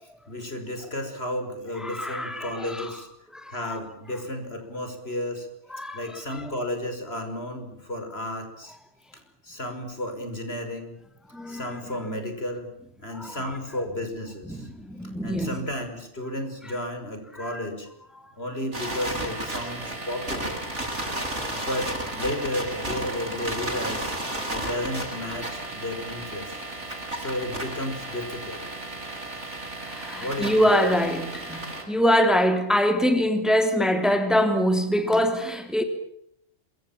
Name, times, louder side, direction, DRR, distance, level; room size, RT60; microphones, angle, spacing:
voice 1, 0.3-3.1 3.5-5.5 5.9-8.8 9.4-10.9 11.5-12.7 13.0-14.7 15.2-17.9 18.4-20.6 21.5-24.1 24.5-26.5 27.2-28.7 30.2-31.1, left 1 dB, 60° left, 6.1 m, -33 dB
voice 2, 1.8-2.8 3.3-3.7 5.7-6.0 11.3-11.8 13.2-13.4 14.5-15.6 29.9-31.6 31.9-35.8, equal, ahead, 3.0 m, -24 dB
sound 1, 18.7-31.8, right 1 dB, 85° right, 7.5 m, -33 dB
27.0 x 24.0 x 7.4 m
omnidirectional pair, 1.2 m